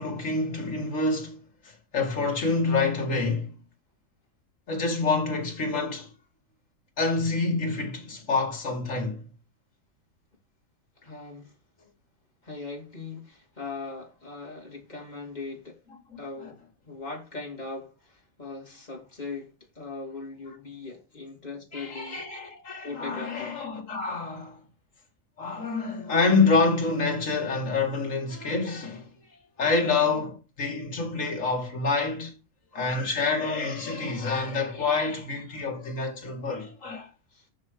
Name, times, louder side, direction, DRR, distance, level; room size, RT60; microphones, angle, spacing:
voice 1, 0.0-1.4 1.9-3.5 4.7-6.1 7.0-9.2 21.7-24.6 25.4-29.1 29.6-32.3 32.7-37.1, left 3 dB, 65° left, 2.5 m, -27 dB
voice 2, 11.0-11.6 12.4-15.8 16.2-22.2 22.8-23.6 37.3-37.5, left 3 dB, 30° left, 2.7 m, -40 dB
6.3 x 5.6 x 6.6 m
omnidirectional pair, 1.5 m